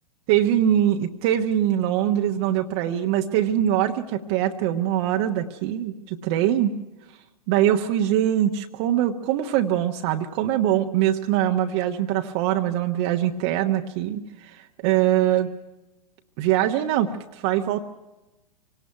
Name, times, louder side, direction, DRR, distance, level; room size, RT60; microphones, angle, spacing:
voice 1, 0.3-6.7 7.5-15.5 16.4-17.8, right 11 dB, 40° right, 4 dB, 1.2 m, -23 dB
25.0 x 18.0 x 5.9 m, 1.0 s
figure-of-eight pair, 105°, 20 cm